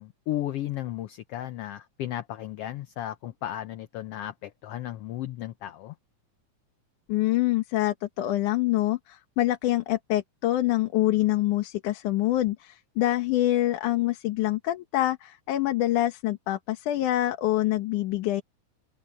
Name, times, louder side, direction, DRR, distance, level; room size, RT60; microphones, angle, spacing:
voice 1, 0.0-5.9, left 13 dB, 70° left, 1.5 m, -34 dB
voice 2, 7.1-18.4, left 15 dB, 90° left, 2.7 m, -25 dB
open air
omnidirectional pair, 3.5 m